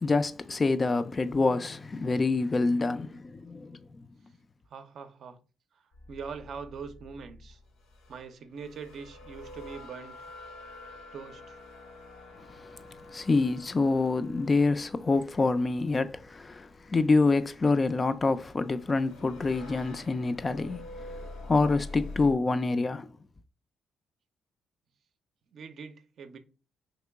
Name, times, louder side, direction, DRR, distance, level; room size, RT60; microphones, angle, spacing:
voice 1, 0.0-3.8 13.1-20.9 21.5-23.1, left 3 dB, 30° left, 0.3 m, -26 dB
voice 2, 4.7-5.4 6.1-7.6 8.1-10.3 11.1-11.6 25.5-26.4, right 5 dB, 65° right, 0.5 m, -42 dB
sound 1, 5.9-22.3, left 2 dB, 90° left, 0.6 m, -47 dB
2.9 x 2.9 x 3.4 m
cardioid pair, 90°, 0 cm